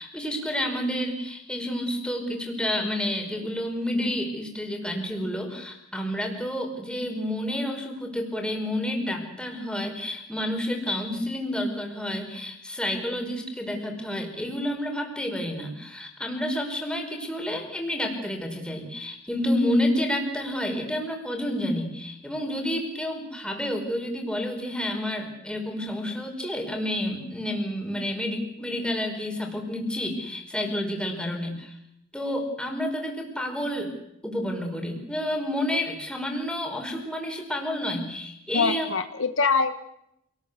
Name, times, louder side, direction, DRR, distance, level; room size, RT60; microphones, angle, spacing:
voice 1, 0.0-31.7 32.1-33.9 34.2-38.9, left 1 dB, 5° left, 2 dB, 5.2 m, -29 dB
voice 2, 38.5-39.9, left 4 dB, 70° left, 9 dB, 1.4 m, -24 dB
27.5 x 19.5 x 8.3 m, 0.81 s
head